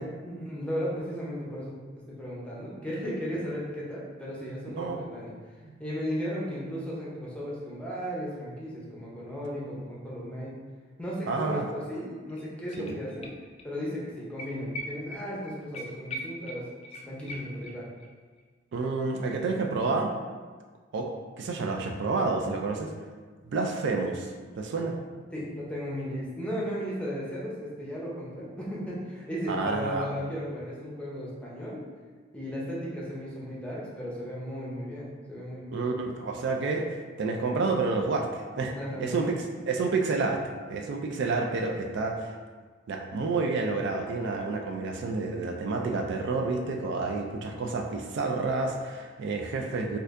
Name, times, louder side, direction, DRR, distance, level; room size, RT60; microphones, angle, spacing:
voice 1, 0.2-5.3 5.8-10.5 11.0-13.3 13.6-16.7 17.1-17.9 25.3-31.8 32.3-35.9 38.7-39.3, equal, 5° left, -6 dB, 0.7 m, -35 dB
voice 2, 11.3-11.7 12.8-13.0 18.7-20.1 20.9-22.9 23.4-25.0 29.5-30.1 35.7-36.9 37.2-38.7 39.0-40.4 40.7-42.4 42.9-50.0, right 3 dB, 65° right, 2 dB, 0.3 m, -29 dB
sound 1, 12.0-12.1 12.3-13.7 14.0-14.1 14.4-18.1 18.4-18.5, equal, 35° left, 0.3 m, -41 dB
4.2 x 2.6 x 2.5 m, 1.4 s
head